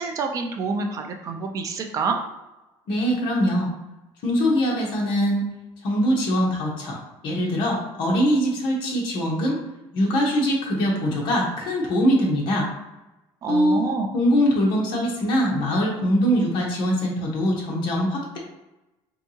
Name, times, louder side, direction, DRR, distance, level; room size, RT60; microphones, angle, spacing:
voice 1, 0.0-2.2 13.4-14.1, right 4 dB, 35° right, 4 dB, 0.4 m, -27 dB
voice 2, 2.9-3.7 4.2-5.4 5.8-7.0 7.2-9.6 9.9-12.7 13.5-13.8 14.1-18.4, equal, 50° left, -3 dB, 1.0 m, -22 dB
4.5 x 2.7 x 2.8 m, 1.0 s
cardioid pair, 165°, 10 cm